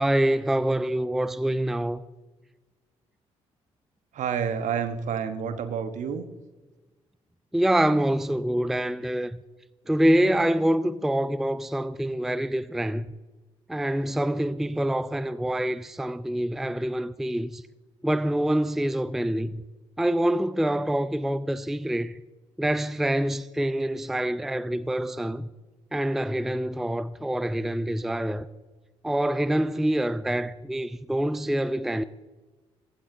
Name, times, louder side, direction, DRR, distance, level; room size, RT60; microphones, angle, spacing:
voice 1, 0.0-2.0 7.5-9.4 9.9-13.1 13.7-17.6 18.0-19.6 20.0-22.1 22.6-25.5 25.9-28.5 29.0-32.0, right 1 dB, ahead, 0.4 m, -26 dB
voice 2, 4.1-6.2, right 7 dB, 55° right, 1.1 m, -29 dB
16.0 x 12.5 x 2.7 m
figure-of-eight pair, 45°, 15 cm